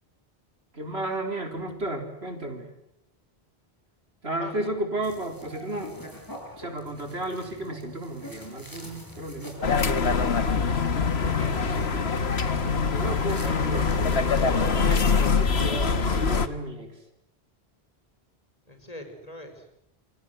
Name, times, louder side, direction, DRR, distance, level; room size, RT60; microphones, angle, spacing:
voice 1, 0.7-2.7 4.2-6.2 6.5-9.6 12.9-16.9, right 1 dB, 75° right, 4 dB, 4.5 m, -33 dB
sound 1, 5.0-15.7, equal, 20° left, 6.6 m, -43 dB
sound 2, 9.6-16.5, left 5 dB, 80° left, 1.7 m, -24 dB
voice 2, 11.2-11.9 13.4-13.8 18.7-19.7, left 1 dB, 35° left, 6 dB, 4.9 m, -42 dB
28.5 x 24.5 x 8.0 m, 0.78 s
omnidirectional pair, 1.1 m